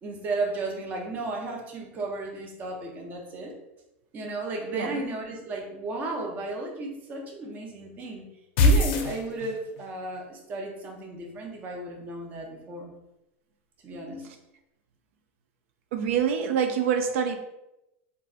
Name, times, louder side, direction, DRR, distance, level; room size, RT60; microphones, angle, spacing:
voice 1, 0.0-3.6 4.1-8.3 8.6-12.9 13.8-14.3, right 2 dB, 25° right, 1 dB, 0.5 m, -34 dB
sound 1, 8.6-9.8, left 1 dB, 60° left, 0.5 m, -21 dB
voice 2, 15.9-17.4, right 7 dB, 75° right, 6 dB, 0.4 m, -25 dB
3.9 x 2.3 x 2.4 m, 0.90 s
supercardioid pair, 160°, 7 cm